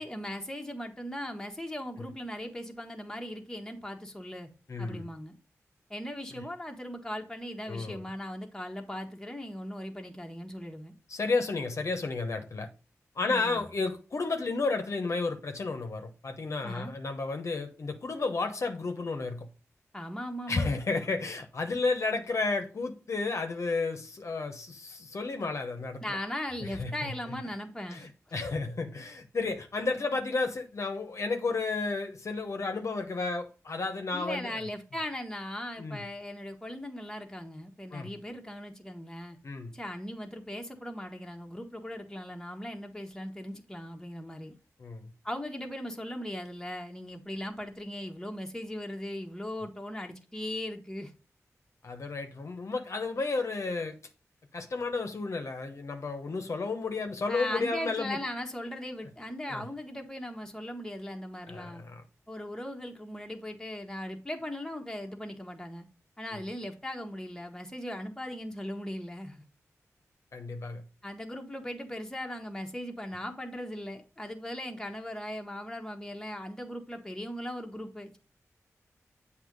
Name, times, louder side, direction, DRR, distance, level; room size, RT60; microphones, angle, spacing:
voice 1, 0.0-4.5 4.8-5.4 5.9-10.9 13.2-13.6 16.6-16.9 19.9-20.8 26.0-28.1 34.1-39.4 39.7-44.6 45.2-51.1 57.3-61.8 62.3-65.9 66.2-69.4 71.0-78.2, left 1 dB, 10° left, 1.0 m, -38 dB
voice 2, 4.7-5.1 6.3-6.4 7.7-8.0 11.1-12.7 13.2-19.5 20.5-26.2 26.6-27.1 27.9-34.6 35.8-36.0 37.9-38.1 39.4-39.7 44.8-45.1 51.8-53.9 54.5-58.2 59.5-59.6 61.5-62.0 66.3-66.4 70.3-70.8, left 3 dB, 60° left, 0.8 m, -32 dB
7.9 x 2.8 x 5.1 m
wide cardioid pair, 75°, 6 cm